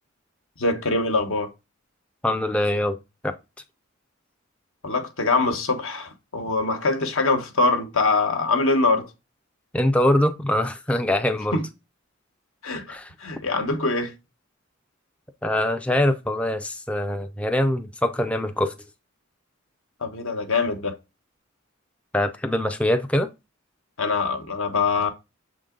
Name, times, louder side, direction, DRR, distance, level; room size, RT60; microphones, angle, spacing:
voice 1, 0.6-1.5 4.8-9.1 11.5-11.6 12.6-14.1 20.0-20.9 24.0-25.1, left 3 dB, 75° left, 1.2 m, -23 dB
voice 2, 2.2-3.3 9.7-11.6 12.9-13.1 15.4-18.7 22.1-23.3, left 1 dB, 5° left, 0.4 m, -23 dB
6.9 x 3.8 x 3.8 m
head